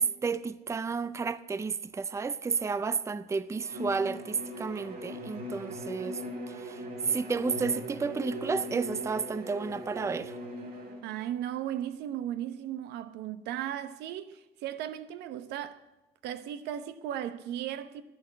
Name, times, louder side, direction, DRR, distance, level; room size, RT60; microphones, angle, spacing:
voice 1, 0.0-6.2 6.5-10.3, right 5 dB, 15° right, 0.5 m, -31 dB
Bowed string instrument, 3.6-11.0, equal, 60° right, 5.4 m, -40 dB
voice 2, 11.0-15.8 16.2-18.0, right 11 dB, 85° right, 0.9 m, -36 dB
10.5 x 9.9 x 8.6 m
cardioid pair, 110°, 17 cm